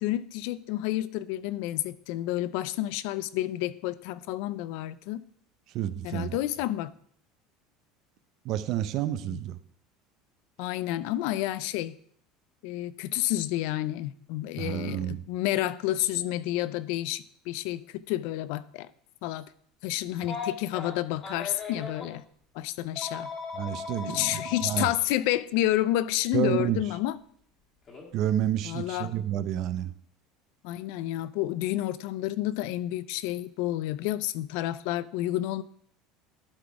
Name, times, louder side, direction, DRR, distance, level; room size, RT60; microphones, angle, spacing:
voice 1, 0.0-5.2 6.0-6.9 9.3-9.4 10.6-11.9 12.6-17.8 18.1-18.9 19.2-19.4 19.8-22.2 22.5-23.3 24.1-27.1 28.6-29.1 30.6-35.6, left 14 dB, 60° left, 17 dB, 0.4 m, -30 dB
voice 2, 5.7-6.4 8.4-9.6 14.6-15.3 23.5-24.9 26.3-26.8 28.1-29.9, right 11 dB, 40° right, 13 dB, 0.5 m, -29 dB
Telephone, 20.2-22.1 22.9-24.8 26.2-26.3 27.9-28.1, left 5 dB, 20° left, 1.5 m, -37 dB
11.5 x 4.1 x 4.7 m, 0.63 s
cardioid pair, 175°, 0 cm